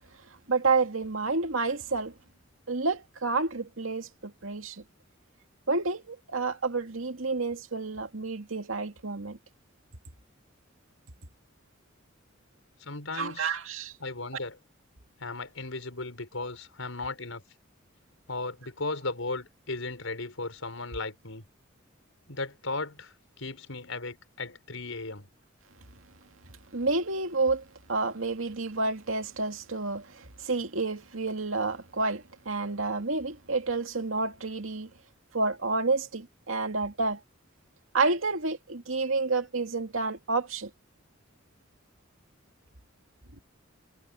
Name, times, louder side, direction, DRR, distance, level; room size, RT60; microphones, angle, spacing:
voice 1, 0.5-2.2 2.7-4.8 5.7-9.4 13.1-13.9 26.7-34.9 35.3-37.2 37.9-40.7, right 3 dB, 90° right, 2.3 m, -29 dB
voice 2, 12.8-13.6 14.0-14.6 15.2-17.4 18.3-21.4 22.3-25.3, left 3 dB, 90° left, 4.9 m, -36 dB
head